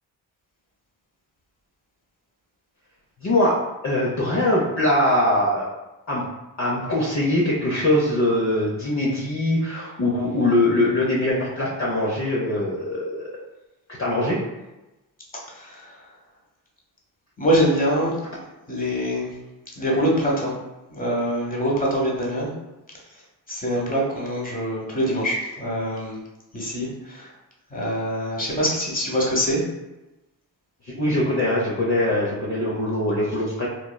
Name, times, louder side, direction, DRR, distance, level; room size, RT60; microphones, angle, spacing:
voice 1, 3.2-3.6 3.8-5.7 6.1-6.2 6.6-13.4 14.0-14.4 30.8-33.7, left 1 dB, 40° left, -6 dB, 0.7 m, -22 dB
voice 2, 15.5-16.0 17.4-18.3 18.7-19.3 19.8-20.5 20.9-22.5 23.5-26.2 26.5-27.3 27.7-29.6, equal, 20° left, -3 dB, 1.1 m, -24 dB
3.2 x 2.2 x 2.2 m, 1.0 s
supercardioid pair, 45°, 41 cm